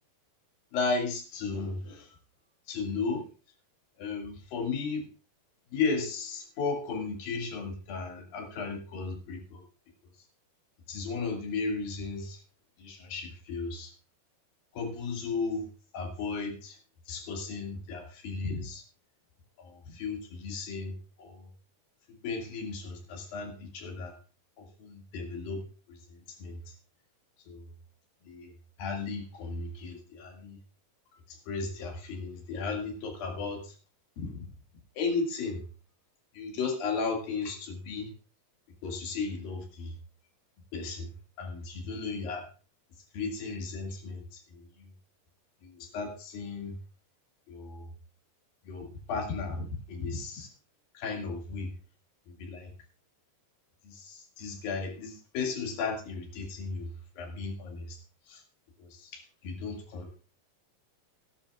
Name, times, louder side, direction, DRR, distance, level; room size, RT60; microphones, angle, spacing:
voice 1, 0.7-2.1 2.7-3.2 4.0-5.1 5.7-9.6 10.9-12.4 12.8-13.9 14.8-15.6 15.9-16.8 17.1-18.8 19.6-21.4 22.2-24.1 24.8-25.6 25.9-26.0 26.4-26.6 27.5-27.6 28.3-28.5 28.8-30.6 31.5-33.6 34.2-34.4 35.0-35.6 36.4-38.1 38.8-39.9 40.7-41.1 41.4-42.5 43.1-44.4 45.6-46.7 47.5-47.8 48.7-50.5 51.0-51.7 52.4-52.7 53.9-56.9 57.2-58.0 58.3-58.4 58.9-60.2, left 4 dB, 85° left, 2 dB, 4.0 m, -35 dB
17.0 x 11.5 x 2.4 m, 0.34 s
omnidirectional pair, 4.0 m